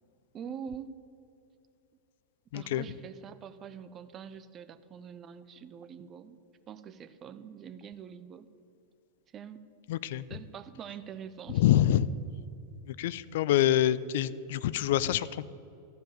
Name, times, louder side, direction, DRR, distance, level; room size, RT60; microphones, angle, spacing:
voice 1, 0.3-1.0 2.5-8.5 9.3-9.6 10.3-11.6, right 7 dB, 30° right, 12 dB, 0.5 m, -44 dB
voice 2, 2.5-2.9 9.9-10.2 11.5-12.1 12.9-15.5, left 12 dB, 55° left, 17 dB, 0.3 m, -26 dB
12.5 x 5.1 x 8.4 m, 2.6 s
figure-of-eight pair, 90°, 0 cm